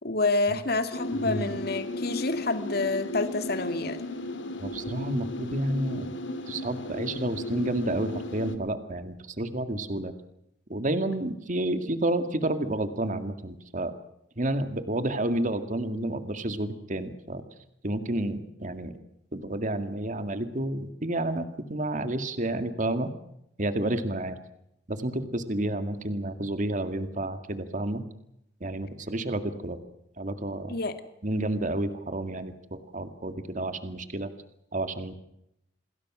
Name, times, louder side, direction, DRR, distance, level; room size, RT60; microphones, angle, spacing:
voice 1, 0.0-4.1 30.7-30.9, left 3 dB, 60° left, 9 dB, 2.2 m, -28 dB
sound 1, 0.9-8.6, left 1 dB, 85° left, 2.5 m, -35 dB
voice 2, 1.1-1.5 4.6-6.1 6.5-10.1 10.7-13.9 14.4-17.4 17.8-18.9 19.3-23.1 23.6-24.4 24.9-28.0 28.6-29.8 30.2-30.7 31.2-34.3 34.7-35.1, right 1 dB, 45° right, 9 dB, 2.1 m, -30 dB
28.5 x 21.0 x 6.2 m, 0.79 s
head